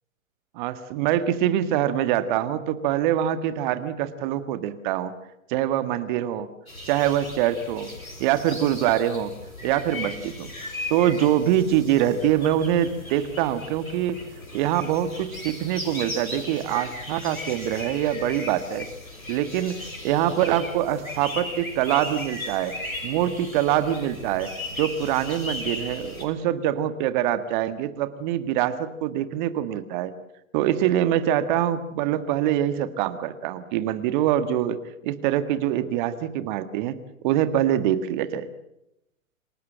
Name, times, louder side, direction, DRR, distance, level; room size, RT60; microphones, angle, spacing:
voice 1, 0.5-5.1 5.5-6.5 6.9-7.9 8.2-9.3 9.6-10.5 10.9-14.2 14.5-18.9 19.3-22.7 23.0-24.5 24.8-30.1 30.5-34.8 35.0-37.0 37.2-38.5, right 11 dB, 35° right, 12 dB, 1.7 m, -24 dB
sound 1, 6.7-26.2, left 1 dB, 85° left, 6.5 m, -37 dB
27.5 x 18.0 x 7.7 m, 0.83 s
figure-of-eight pair, 115°, 40 cm